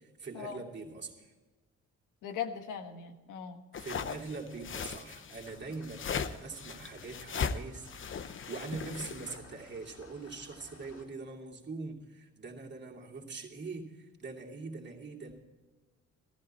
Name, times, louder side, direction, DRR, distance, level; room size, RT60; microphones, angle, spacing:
voice 1, 0.0-1.3 3.8-15.4, right 3 dB, 35° right, -1 dB, 2.7 m, -43 dB
voice 2, 2.2-3.6, left 8 dB, 85° left, 6 dB, 1.5 m, -39 dB
sound 1, 3.7-9.4, left 6 dB, 40° left, 0.8 m, -38 dB
sound 2, 5.5-11.0, left 3 dB, 65° left, 3.9 m, -56 dB
14.5 x 14.5 x 4.4 m, 1.3 s
cardioid pair, 90°, 30 cm